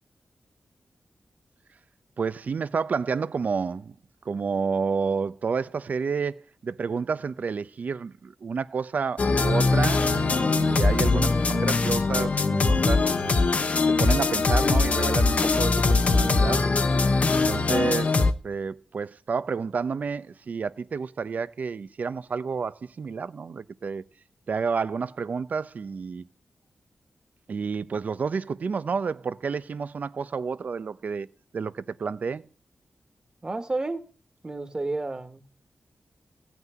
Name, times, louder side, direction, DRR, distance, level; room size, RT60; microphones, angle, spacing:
voice 1, 2.2-3.9 4.2-13.1 13.9-16.7 17.3-24.0 24.5-26.3 27.5-31.3 31.5-32.5, right 5 dB, 60° right, 0.8 m, -30 dB
sound 1, 9.2-18.3, left 3 dB, 50° left, 1.1 m, -22 dB
voice 2, 33.4-34.0 34.4-35.4, right 2 dB, 25° right, 1.7 m, -30 dB
16.0 x 6.1 x 9.3 m
wide cardioid pair, 115°, 3 cm